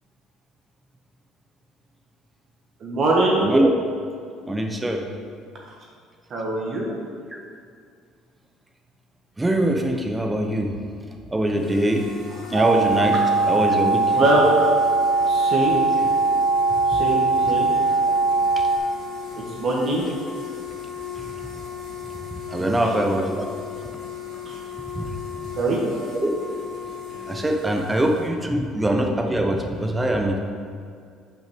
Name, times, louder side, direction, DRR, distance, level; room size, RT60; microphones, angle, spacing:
voice 1, 2.8-3.4 6.3-6.9 14.1-14.4 15.3-15.8 16.9-17.7 19.6-20.0 22.8-22.9 24.4-24.6 25.6-25.8, right 2 dB, 35° right, -3 dB, 1.1 m, -22 dB
voice 2, 4.5-5.0 7.3-7.4 9.4-10.7 11.3-12.0 12.5-13.1 13.5-14.2 18.6-18.7 21.2-21.3 22.5-23.5 24.9-25.1 26.1-26.3 27.3-30.4, right 1 dB, 10° right, 3 dB, 0.6 m, -22 dB
sound 1, 11.4-28.3, left 7 dB, 45° left, 1.4 m, -37 dB
sound 2, 12.5-18.8, right 3 dB, 60° right, 1.0 m, -20 dB
8.9 x 5.6 x 3.5 m, 2.2 s
cardioid pair, 155°, 0 cm